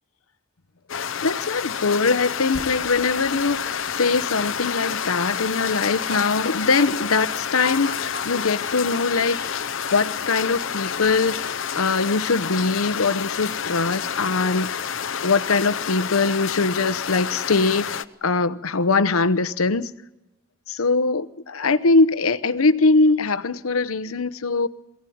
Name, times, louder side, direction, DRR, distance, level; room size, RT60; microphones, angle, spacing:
sound 1, 0.9-18.0, left 7 dB, 65° left, 0.8 m, -29 dB
voice 1, 1.2-9.4 9.9-11.5 11.7-14.9 15.2-17.9 18.2-19.9 20.7-24.7, left 3 dB, 90° left, 0.9 m, -22 dB
sound 2, 2.5-8.3, right 2 dB, 70° right, 2.1 m, -48 dB
sound 3, 5.0-11.8, left 3 dB, 50° left, 1.9 m, -40 dB
23.0 x 17.0 x 9.3 m
head